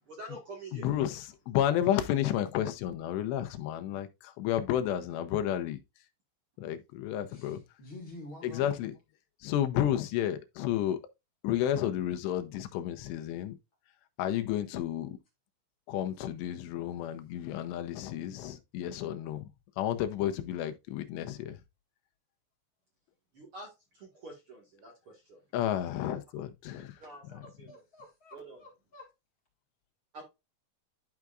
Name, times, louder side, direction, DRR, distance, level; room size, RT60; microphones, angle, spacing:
voice 1, 0.1-0.9 23.3-23.7 23.9-25.4 27.0-27.8 28.3-28.6 30.1-30.2, right 2 dB, 50° right, 1.8 m, -47 dB
voice 2, 0.7-5.8 6.6-7.6 8.4-8.9 9.4-11.0 11.4-13.6 14.2-15.2 15.9-19.5 19.8-21.6 25.5-27.0 27.3-27.5, left 11 dB, 90° left, 2.9 m, -31 dB
voice 3, 7.3-8.8 27.4-29.1, left 1 dB, 45° left, 1.9 m, -49 dB
12.0 x 4.6 x 2.4 m
omnidirectional pair, 4.8 m